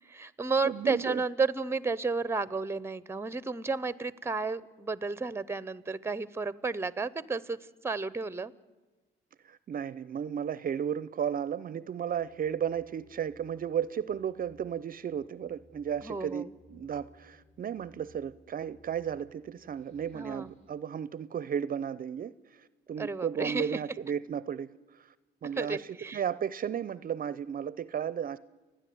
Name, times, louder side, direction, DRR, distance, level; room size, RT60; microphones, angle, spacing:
voice 1, 0.1-7.6 7.8-8.5 16.0-16.5 20.1-20.5 23.0-23.8 25.6-26.2, right 4 dB, 10° right, 19 dB, 0.8 m, -32 dB
voice 2, 0.6-1.2 9.4-25.1 25.4-28.4, right 8 dB, 45° right, 18 dB, 0.5 m, -34 dB
sound 1, 12.1-20.7, left 1 dB, 35° left, 6.5 m, -61 dB
29.0 x 10.5 x 9.3 m, 1.2 s
cardioid pair, 90°, 20 cm